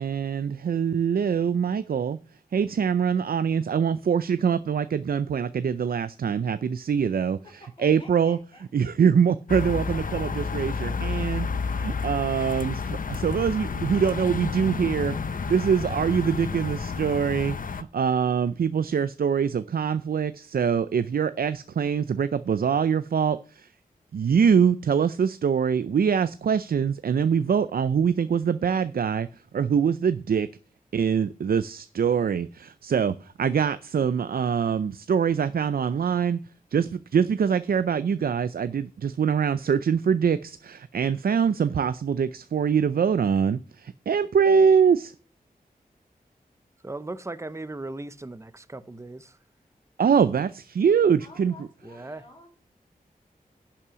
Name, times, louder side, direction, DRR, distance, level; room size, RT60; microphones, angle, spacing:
voice 1, 0.0-2.2 2.5-7.4 7.8-8.4 8.7-15.2 15.5-23.7 24.1-29.3 29.5-30.5 30.9-36.4 36.7-45.1 50.0-51.5, right 7 dB, 75° right, 0.5 m, -24 dB
voice 2, 7.6-8.7 51.2-52.6, left 2 dB, 35° left, 3.6 m, -50 dB
sound 1, 9.5-17.8, left 5 dB, 65° left, 0.7 m, -30 dB
voice 3, 46.8-49.3 51.8-52.2, right 2 dB, 20° right, 0.7 m, -37 dB
11.0 x 5.9 x 6.9 m
wide cardioid pair, 105°, 15 cm